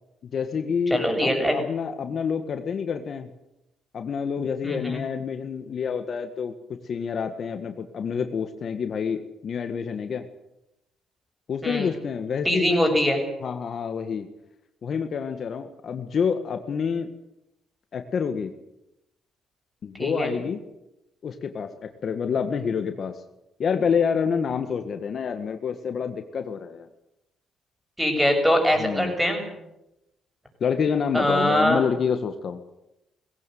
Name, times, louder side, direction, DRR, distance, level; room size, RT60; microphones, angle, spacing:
voice 1, 0.3-3.3 3.9-6.5 6.8-10.3 11.5-13.0 13.4-14.3 14.8-17.1 17.9-18.5 19.8-20.6 21.2-23.1 23.6-26.9 28.8-29.1 30.6-32.6, left 6 dB, 55° left, 7 dB, 1.7 m, -28 dB
voice 2, 0.9-1.6 4.6-5.0 11.6-11.9 12.4-13.2 20.0-20.3 28.0-29.5 31.1-31.8, equal, 5° right, 4 dB, 7.2 m, -22 dB
19.5 x 16.5 x 9.4 m, 0.89 s
cardioid pair, 90°, 0 cm